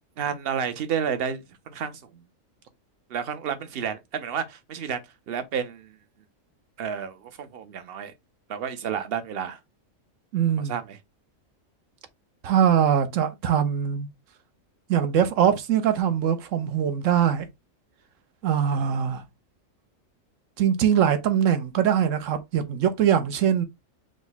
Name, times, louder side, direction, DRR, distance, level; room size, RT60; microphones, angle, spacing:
voice 1, 0.2-2.2 3.1-5.0 5.3-6.0 6.8-8.1 8.5-9.6 10.6-11.0, right 7 dB, 55° right, 0.8 m, -31 dB
voice 2, 10.3-10.7 12.4-14.1 14.9-17.5 18.4-19.2 20.6-23.6, right 9 dB, 75° right, 1.1 m, -22 dB
5.0 x 2.1 x 4.0 m
omnidirectional pair, 1.4 m